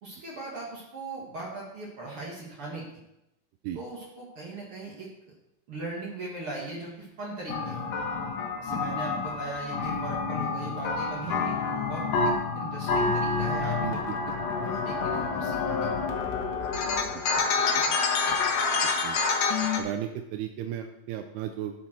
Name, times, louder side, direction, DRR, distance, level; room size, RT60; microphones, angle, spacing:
voice 1, 0.0-2.9 3.7-5.1 5.7-7.9 8.6-11.6 11.9-12.0 12.5-15.9, right 3 dB, 45° right, -4 dB, 1.9 m, -39 dB
sound 1, 7.5-19.8, left 4 dB, 85° left, 1.4 m, -28 dB
voice 2, 11.2-11.5 13.8-14.0 17.4-17.5 17.9-18.0 19.0-19.2 19.8-21.7, right 11 dB, 85° right, 5 dB, 2.7 m, -35 dB
10.5 x 7.4 x 4.4 m, 0.87 s
omnidirectional pair, 4.6 m